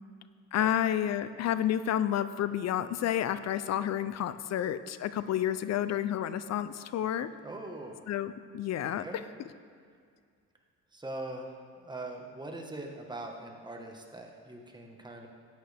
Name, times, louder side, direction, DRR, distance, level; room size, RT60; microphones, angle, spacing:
voice 1, 0.5-7.3 8.1-9.2, left 10 dB, 60° left, 13 dB, 0.5 m, -30 dB
voice 2, 7.4-8.0 8.8-9.2 10.9-15.3, right 2 dB, 15° right, 1 dB, 1.4 m, -42 dB
13.5 x 8.9 x 3.5 m, 2.2 s
cardioid pair, 90°, 30 cm